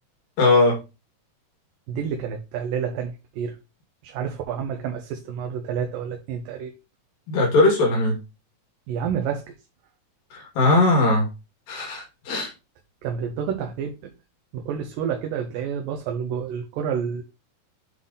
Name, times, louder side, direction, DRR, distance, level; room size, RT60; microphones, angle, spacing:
voice 1, 0.4-0.8 7.3-8.2 10.6-11.3 11.7-12.5, left 2 dB, 85° left, 3.6 m, -19 dB
voice 2, 1.9-3.6 4.0-6.8 8.9-9.5 13.0-14.1 14.5-17.2, right 7 dB, 80° right, 2.5 m, -29 dB
7.9 x 3.8 x 3.9 m
omnidirectional pair, 3.9 m